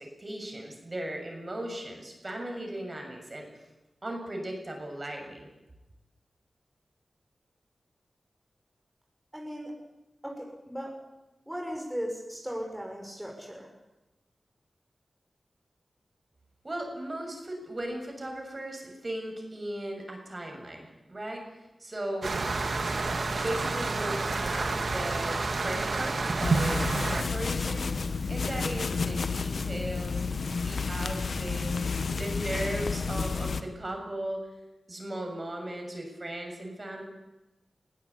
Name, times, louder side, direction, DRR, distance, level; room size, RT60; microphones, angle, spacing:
voice 1, 0.0-3.5 4.0-5.5 16.6-21.4 21.8-22.3 23.3-27.8 28.3-30.2 30.6-34.4 34.9-37.0, right 1 dB, 40° right, 2 dB, 6.9 m, -37 dB
voice 2, 9.3-9.7 10.2-10.9 11.5-13.7, equal, 10° right, 0 dB, 5.3 m, -37 dB
sound 1, 22.2-27.2, right 3 dB, 70° right, 2.3 m, -29 dB
sound 2, 26.4-33.6, left 4 dB, 75° left, 1.1 m, -31 dB
22.0 x 15.0 x 8.5 m, 1.0 s
cardioid pair, 40°, 0 cm